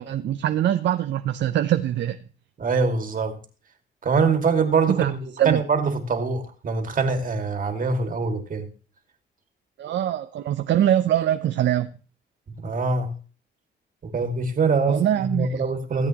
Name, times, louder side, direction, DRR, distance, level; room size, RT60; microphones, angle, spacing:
voice 1, 0.0-2.2 4.9-5.1 5.4-5.6 9.8-11.9 14.9-15.6, right 11 dB, 65° right, 0.6 m, -23 dB
voice 2, 2.6-3.4 4.0-5.2 5.4-8.7 12.6-13.1 14.0-16.1, right 4 dB, 45° right, 2.1 m, -23 dB
16.5 x 8.2 x 3.0 m
cardioid pair, 90°, 20 cm